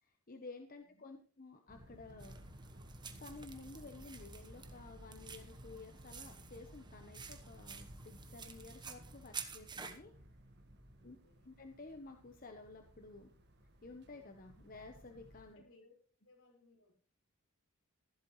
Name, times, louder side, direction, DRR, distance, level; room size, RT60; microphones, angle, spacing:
voice 1, 0.0-2.4 3.2-10.1 11.0-11.2 11.4-13.3 13.8-15.6, left 3 dB, 40° left, 4 dB, 1.0 m, -53 dB
sound 1, 1.7-15.6, right 1 dB, 50° right, 1.6 m, -59 dB
sound 2, 2.2-10.0, right 5 dB, 20° right, 1.1 m, -50 dB
voice 2, 11.0-11.5 15.4-15.9 16.2-16.9, left 3 dB, 75° left, 0 dB, 5.4 m, -66 dB
14.5 x 12.0 x 3.2 m, 0.43 s
head